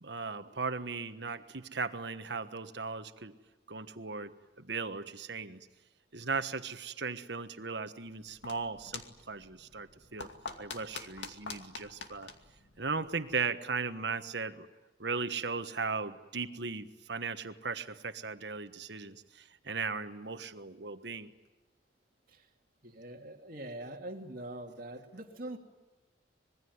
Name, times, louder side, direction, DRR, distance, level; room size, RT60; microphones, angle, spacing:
voice 1, 0.0-3.3 3.7-4.3 4.6-5.6 6.1-10.3 10.6-12.3 12.8-14.7 15.0-21.3, right 4 dB, 65° right, 9 dB, 1.4 m, -37 dB
sound 1, 8.1-13.5, left 4 dB, 70° left, 2.4 m, -47 dB
voice 2, 22.8-25.6, right 1 dB, 50° right, 3 dB, 2.5 m, -43 dB
26.0 x 21.5 x 9.6 m, 1.2 s
head